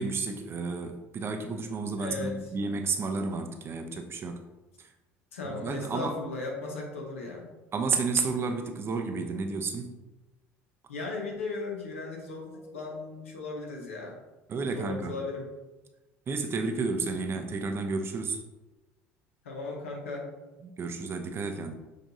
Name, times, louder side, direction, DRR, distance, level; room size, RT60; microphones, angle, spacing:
voice 1, 0.0-4.4 5.4-6.1 7.7-9.9 14.5-15.2 16.3-18.4 20.6-21.7, right 4 dB, 35° right, 6 dB, 0.6 m, -31 dB
voice 2, 2.0-2.4 5.3-7.5 10.9-14.2 14.7-15.5 19.4-20.3, left 3 dB, 85° left, 0 dB, 0.9 m, -36 dB
6.4 x 2.5 x 2.7 m, 1.1 s
hypercardioid pair, 65°, 7 cm